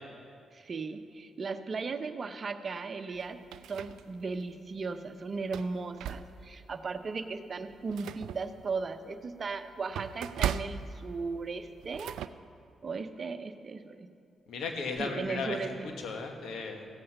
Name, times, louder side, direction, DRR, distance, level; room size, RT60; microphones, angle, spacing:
voice 1, 0.5-3.4 3.7-12.2 12.8-14.1 15.0-15.9, right 4 dB, 50° right, 9 dB, 0.8 m, -36 dB
sound 1, 3.1-4.4 4.9-5.0 5.4-6.6 7.1-7.2 7.6-12.3, right 9 dB, 75° right, 0.3 m, -38 dB
voice 2, 14.5-15.6 15.8-16.9, left 4 dB, 70° left, 4 dB, 1.4 m, -36 dB
15.5 x 8.6 x 5.5 m, 2.4 s
hypercardioid pair, 45°, 0 cm